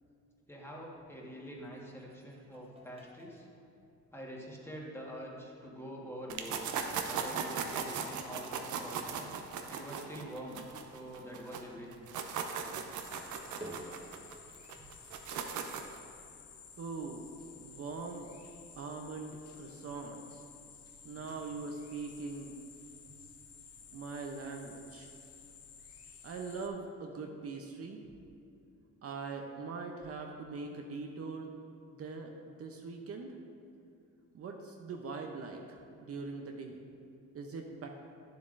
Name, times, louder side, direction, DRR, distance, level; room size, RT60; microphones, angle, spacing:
voice 1, 0.5-3.5 4.1-6.6 7.1-9.3 9.7-12.0 14.8-14.9, equal, 10° left, -3 dB, 1.5 m, -45 dB
sound 1, 0.7-16.5, right 1 dB, 20° right, 1.2 m, -57 dB
sound 2, 6.3-11.6 11.9-16.0, right 6 dB, 80° right, 0.7 m, -38 dB
sound 3, 13.0-26.7, left 6 dB, 55° left, 0.8 m, -54 dB
voice 2, 16.8-17.3 17.6-18.3 18.8-20.4 21.0-22.5 23.9-25.1 26.2-28.0 29.0-31.6 31.9-33.3 34.3-36.8 37.3-37.9, right 4 dB, 50° right, 2 dB, 0.7 m, -42 dB
9.5 x 7.2 x 2.6 m, 2.6 s
cardioid pair, 90°, 30 cm